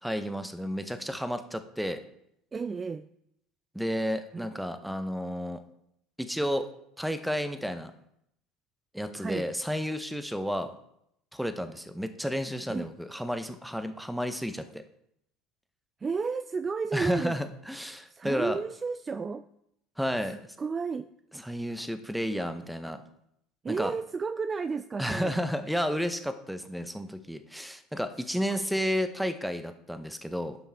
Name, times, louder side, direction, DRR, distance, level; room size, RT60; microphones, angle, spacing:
voice 1, 0.0-2.0 3.7-5.6 6.2-6.7 7.0-7.9 8.9-10.7 11.3-14.8 16.9-18.6 20.0-20.4 21.4-23.0 23.7-23.9 25.0-30.6, equal, ahead, 9 dB, 0.9 m, -32 dB
voice 2, 2.5-3.1 4.3-4.5 9.1-9.5 12.7-12.9 16.0-17.4 18.1-19.5 20.2-21.1 23.6-25.4 28.5-28.6, right 5 dB, 25° right, 12 dB, 0.3 m, -32 dB
12.0 x 5.5 x 3.5 m, 0.76 s
hypercardioid pair, 70°, 0 cm